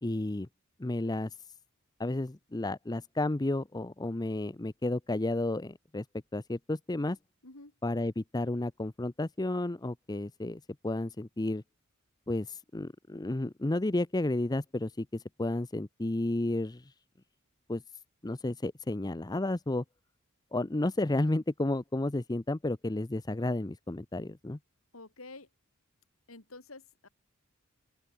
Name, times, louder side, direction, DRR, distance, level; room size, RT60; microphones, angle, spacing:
voice 1, 0.0-0.5 0.8-1.4 2.0-6.0 6.3-7.2 7.8-11.6 12.3-16.9 17.7-17.8 18.2-19.8 20.5-24.6, left 2 dB, 20° left, 0.6 m, -32 dB
voice 2, 24.9-25.5 26.3-27.1, left 2 dB, 80° left, 3.6 m, -49 dB
open air
head